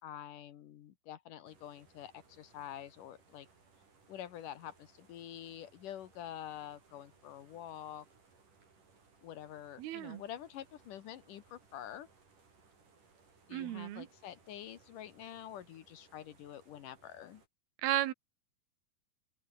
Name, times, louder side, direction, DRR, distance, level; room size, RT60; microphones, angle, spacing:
voice 1, 0.0-3.5 4.1-8.1 9.2-12.1 13.5-17.4, left 11 dB, 65° left, 2.7 m, -47 dB
sound 1, 1.4-17.5, right 4 dB, 55° right, 7.7 m, -66 dB
voice 2, 9.8-10.2 13.5-14.1 17.8-18.1, right 14 dB, 85° right, 3.2 m, -34 dB
open air
omnidirectional pair, 4.3 m